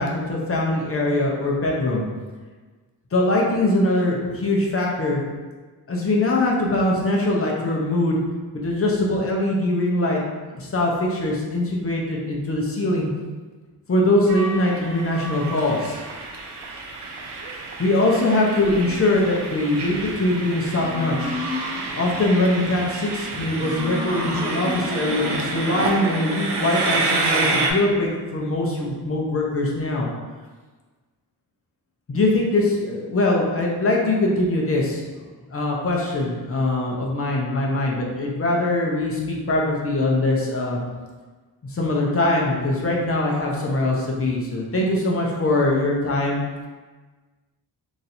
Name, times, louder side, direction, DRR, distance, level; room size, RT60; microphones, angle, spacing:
voice 1, 0.0-2.0 3.1-5.2 5.9-8.2 8.5-10.2 10.5-13.1 13.9-16.0 17.8-21.3 21.9-30.1 32.1-35.0 35.5-40.8 41.7-46.4, left 2 dB, 35° left, -2 dB, 0.7 m, -22 dB
Train, 14.3-27.7, right 3 dB, 90° right, 0.6 m, -29 dB
sound 1, 18.8-19.6 20.7-22.2 23.5-26.0, left 3 dB, 10° right, 0.7 m, -33 dB
3.0 x 2.6 x 4.2 m, 1.4 s
wide cardioid pair, 125°, 39 cm